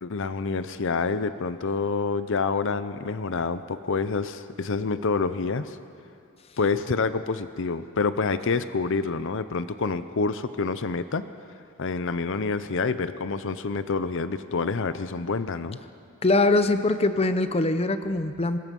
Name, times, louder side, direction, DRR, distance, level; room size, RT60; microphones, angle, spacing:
voice 1, 0.0-5.8 6.6-11.2 11.8-15.8, left 4 dB, 65° left, 12 dB, 0.7 m, -27 dB
voice 2, 16.2-18.6, left 2 dB, 30° left, 10 dB, 0.7 m, -22 dB
24.5 x 20.5 x 5.4 m, 2.5 s
head